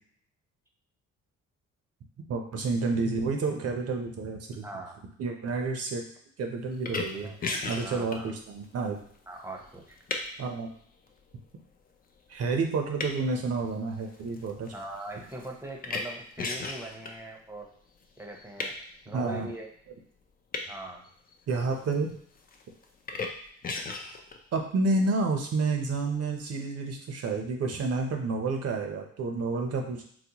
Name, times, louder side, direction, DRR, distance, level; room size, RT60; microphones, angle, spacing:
voice 1, 2.3-4.6 5.2-6.0 6.4-7.3 7.7-9.0 10.4-10.7 12.3-14.7 19.1-19.5 21.5-22.1 24.5-30.0, right 3 dB, 55° right, 3 dB, 0.7 m, -29 dB
voice 2, 4.6-5.0 7.2-7.6 7.8-8.3 9.3-10.0 14.7-17.7 18.2-18.7 19.1-19.7 20.7-21.0, right 1 dB, 10° right, 0 dB, 0.7 m, -41 dB
sound 1, 6.8-10.5 11.1-11.4 12.1-12.3 12.6-17.1 18.0-18.8 20.5-20.7 21.0-22.1 22.3-23.3 23.6-24.4, left 4 dB, 30° left, 0.5 m, -35 dB
4.0 x 2.1 x 2.9 m, 0.62 s
cardioid pair, 90°, 30 cm